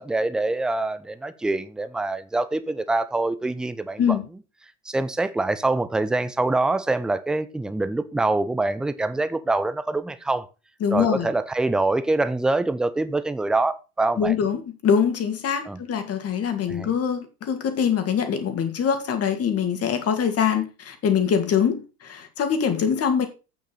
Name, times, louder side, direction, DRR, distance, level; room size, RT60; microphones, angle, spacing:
voice 1, 0.0-4.2 4.9-10.5 10.9-14.3 15.7-15.8 16.7-16.9, right 2 dB, ahead, 0.3 m, -25 dB
voice 2, 10.8-11.3 14.2-23.3, left 7 dB, 30° left, 2.2 m, -23 dB
8.6 x 7.9 x 4.0 m
figure-of-eight pair, 75°, 45 cm